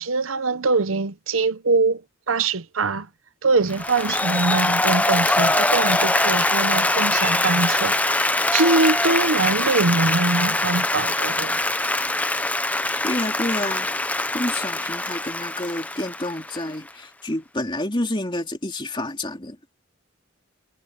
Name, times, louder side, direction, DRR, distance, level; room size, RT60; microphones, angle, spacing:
voice 1, 0.0-2.0 2.3-3.1 3.4-11.6, right 3 dB, 85° right, 0.9 m, -23 dB
Applause, 3.7-16.9, left 2 dB, 5° left, 0.7 m, -23 dB
voice 2, 13.0-13.9 14.3-19.6, left 1 dB, 25° left, 3.2 m, -28 dB
head